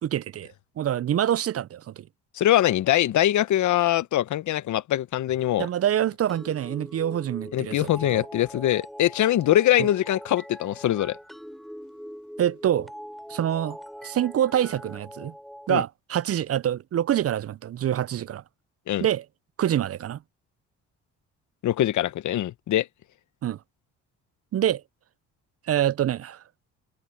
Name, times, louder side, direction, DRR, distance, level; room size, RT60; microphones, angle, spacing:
voice 1, 0.0-2.1 5.6-8.3 9.8-9.9 12.4-12.9 13.3-13.8 14.0-15.3 15.7-18.4 19.0-19.2 19.6-20.2 23.4-23.6 24.5-24.8 25.7-26.4, right 11 dB, 45° right, 0.6 m, -26 dB
voice 2, 2.3-5.7 7.5-11.2 15.7-15.8 18.9-19.1 21.6-22.9, left 13 dB, 65° left, 1.1 m, -23 dB
sound 1, 6.3-15.7, equal, ahead, 6.6 m, -42 dB
supercardioid pair, 55°, 32 cm